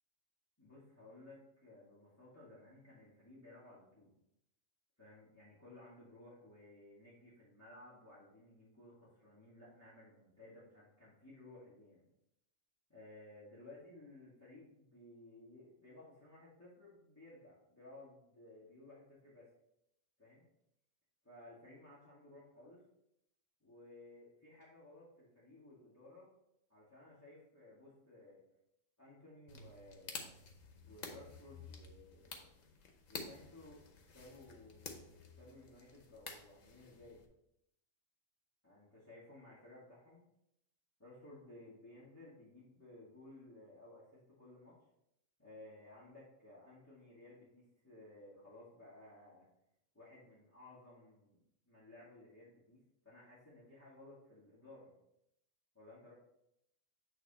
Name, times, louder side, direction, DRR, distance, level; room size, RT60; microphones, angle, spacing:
voice 1, 0.6-4.1 5.0-12.1 12.9-19.5 20.2-20.4 21.2-22.8 23.6-26.3 26.7-28.4 29.0-30.4 30.8-32.5 33.1-33.8 34.1-37.2 38.6-40.2 41.0-44.8 45.4-49.5 49.9-51.4 51.7-52.8 53.0-54.9 55.7-56.1, left 2 dB, 10° left, -10 dB, 2.0 m, -57 dB
sound 1, 29.5-37.3, left 4 dB, 75° left, 1.3 m, -51 dB
8.3 x 3.4 x 4.2 m, 0.79 s
omnidirectional pair, 1.4 m